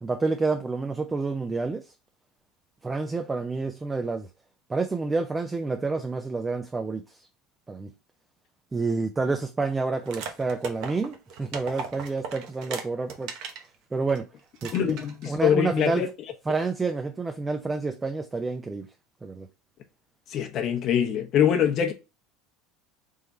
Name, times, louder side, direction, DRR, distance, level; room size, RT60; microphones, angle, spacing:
voice 1, 0.0-1.9 2.8-4.3 4.7-7.2 7.7-7.9 8.7-13.4 13.9-14.3 14.6-15.0 15.3-16.0 16.5-18.9 19.2-19.5, right 3 dB, 20° right, 0.6 m, -29 dB
sound 1, 10.1-13.7 14.1-14.2 14.6-15.3, right 6 dB, 60° right, 0.9 m, -37 dB
voice 2, 14.7-16.1 20.3-21.9, left 9 dB, 50° left, 0.9 m, -23 dB
3.6 x 3.2 x 4.1 m
hypercardioid pair, 90°, 0 cm